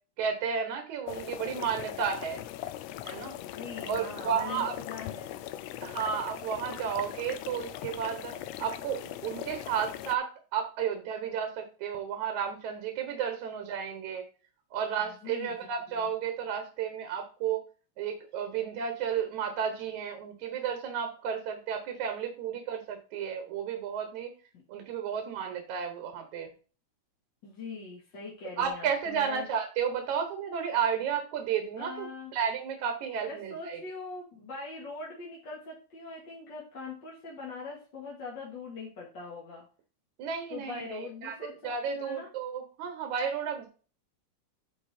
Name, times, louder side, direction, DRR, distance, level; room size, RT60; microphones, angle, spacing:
voice 1, 0.2-2.4 3.0-3.4 3.9-4.7 5.8-14.2 14.7-17.6 18.0-24.3 24.7-26.5 28.6-32.1 32.3-33.8 40.2-41.4 41.6-43.7, right 7 dB, 80° right, 5 dB, 2.6 m, -32 dB
sound 1, 1.1-10.1, left 13 dB, 80° left, 1.6 m, -40 dB
voice 2, 3.4-5.4 15.0-15.6 24.5-24.6 27.4-29.5 31.8-32.3 33.3-39.6 40.5-42.3, left 3 dB, 40° left, -5 dB, 2.4 m, -42 dB
10.0 x 4.7 x 4.3 m, 0.38 s
omnidirectional pair, 3.4 m